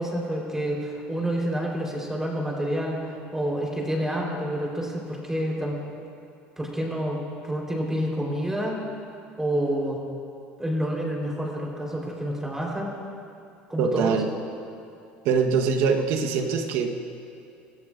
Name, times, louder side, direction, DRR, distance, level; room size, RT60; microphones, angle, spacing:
voice 1, 0.0-5.8 6.6-7.2 7.4-8.7 9.4-10.0 10.6-12.9 13.7-14.2, equal, 10° right, -2 dB, 4.0 m, -28 dB
voice 2, 13.8-14.3 15.2-16.9, right 5 dB, 70° right, 4 dB, 1.2 m, -23 dB
22.5 x 14.5 x 2.6 m, 2.6 s
supercardioid pair, 90°, 5 cm